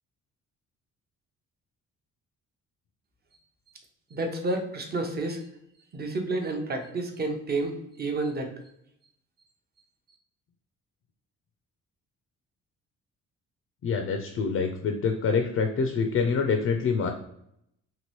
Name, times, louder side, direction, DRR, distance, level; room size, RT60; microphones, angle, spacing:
voice 1, 4.1-5.4 5.9-8.5, right 2 dB, 35° right, 4 dB, 0.7 m, -30 dB
voice 2, 13.8-17.1, left 5 dB, 50° left, 5 dB, 0.4 m, -26 dB
2.9 x 2.6 x 3.0 m, 0.76 s
cardioid pair, 90°, 30 cm